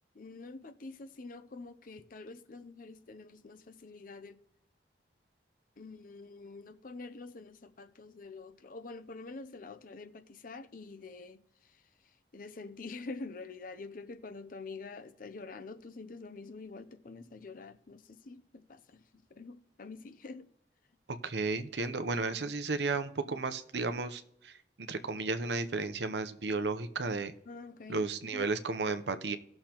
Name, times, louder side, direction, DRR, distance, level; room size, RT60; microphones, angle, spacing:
voice 1, 0.1-4.4 5.8-20.5 27.5-28.5, left 3 dB, 50° left, 0.6 m, -47 dB
voice 2, 21.2-24.5 24.8-27.3 27.9-29.4, right 3 dB, 75° right, 0.8 m, -33 dB
18.0 x 6.6 x 3.0 m
head